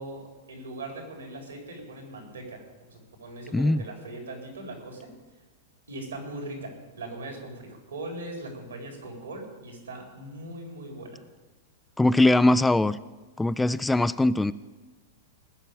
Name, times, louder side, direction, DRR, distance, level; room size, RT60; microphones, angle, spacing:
voice 1, 0.0-5.1 5.9-11.2, right 2 dB, 80° right, 2 dB, 4.3 m, -40 dB
voice 2, 12.0-13.0 13.4-14.5, left 2 dB, 5° left, 15 dB, 0.4 m, -21 dB
19.5 x 6.6 x 8.7 m, 1.2 s
figure-of-eight pair, 100°, 0 cm